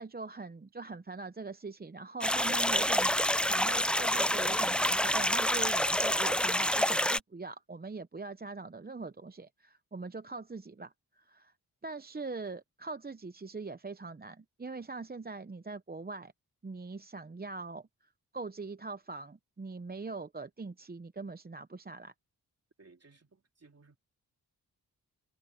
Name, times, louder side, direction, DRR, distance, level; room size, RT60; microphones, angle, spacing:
voice 1, 0.0-3.1 3.4-11.5 11.8-16.3 16.6-17.9 18.3-22.1, right 3 dB, 25° right, 0.9 m, -42 dB
sound 1, 2.2-7.2, left 1 dB, 5° left, 0.5 m, -28 dB
voice 2, 22.8-24.0, right 3 dB, 40° right, 3.4 m, -60 dB
cardioid pair, 60°, 38 cm